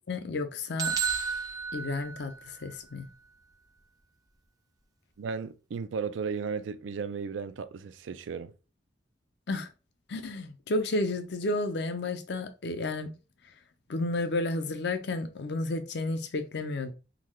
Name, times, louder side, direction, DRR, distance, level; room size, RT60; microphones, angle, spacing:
voice 1, 0.1-1.0 1.7-3.1 9.5-9.7 10.1-13.1 13.9-16.9, left 2 dB, 65° left, 0.5 m, -32 dB
sound 1, 0.8-2.7, right 5 dB, 20° right, 0.4 m, -32 dB
voice 2, 5.2-8.5, right 5 dB, 85° right, 0.4 m, -35 dB
3.7 x 2.3 x 3.1 m
head